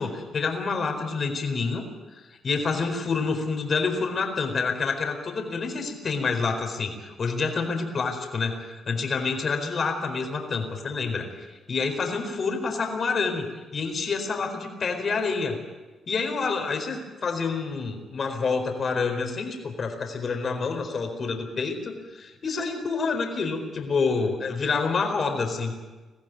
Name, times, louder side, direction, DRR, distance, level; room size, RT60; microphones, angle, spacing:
voice 1, 0.0-1.8 2.1-13.5 13.7-15.6 16.1-25.7, left 4 dB, 45° left, 4 dB, 4.5 m, -28 dB
22.0 x 15.0 x 9.4 m, 1.2 s
cardioid pair, 90°, 0 cm